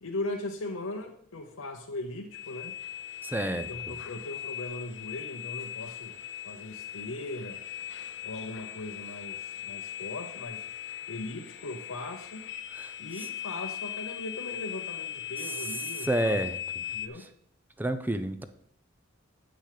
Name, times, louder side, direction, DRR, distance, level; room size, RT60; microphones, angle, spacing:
voice 1, 0.0-2.8 3.7-6.2 6.4-7.6 8.2-10.7 11.1-12.5 13.0-16.4 16.9-17.3, left 2 dB, 85° left, 1 dB, 0.9 m, -39 dB
sound 1, 2.3-17.1, left 10 dB, 55° left, 0.6 m, -39 dB
voice 2, 3.2-4.0 12.7-12.9 15.4-16.6 17.2-17.3 17.8-18.4, right 1 dB, 10° right, 10 dB, 0.5 m, -31 dB
8.0 x 6.4 x 6.7 m, 0.68 s
head